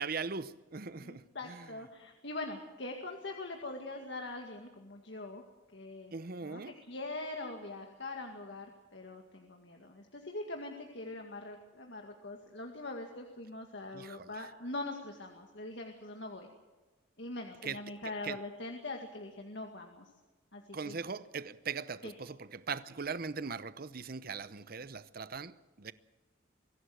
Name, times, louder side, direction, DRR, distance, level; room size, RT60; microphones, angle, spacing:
voice 1, 0.0-1.7 6.1-6.7 13.9-14.3 17.6-17.8 18.2-18.4 20.7-25.9, right 5 dB, 50° right, 0.8 m, -40 dB
voice 2, 1.0-5.4 5.7-6.1 6.4-16.5 17.2-20.1 20.5-20.9 22.0-22.1, left 2 dB, 60° left, 2.1 m, -43 dB
23.0 x 16.5 x 7.8 m
head